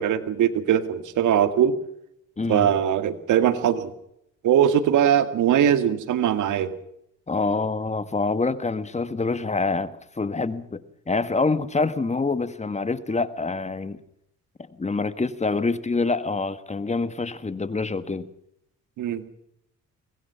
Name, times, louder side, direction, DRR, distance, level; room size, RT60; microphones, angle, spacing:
voice 1, 0.0-1.8 2.5-3.9 4.4-6.7 19.0-19.2, right 9 dB, 80° right, 2.1 m, -21 dB
voice 2, 2.4-2.7 7.3-14.0 14.8-18.3, left 3 dB, 20° left, 1.6 m, -26 dB
24.0 x 19.5 x 5.8 m
cardioid pair, 90°, 30 cm